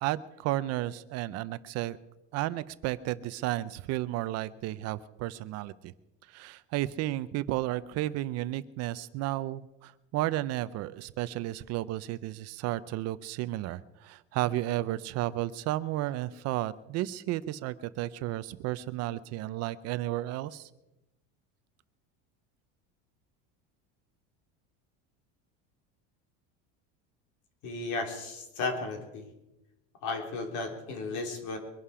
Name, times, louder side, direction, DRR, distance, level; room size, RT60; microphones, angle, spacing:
voice 1, 0.0-2.0 2.3-5.9 6.3-20.7, right 15 dB, 45° right, 15 dB, 0.6 m, -33 dB
voice 2, 27.6-29.3 30.0-31.6, left 3 dB, 55° left, 4 dB, 3.8 m, -34 dB
23.0 x 11.5 x 4.9 m, 0.94 s
cardioid pair, 160°, 35 cm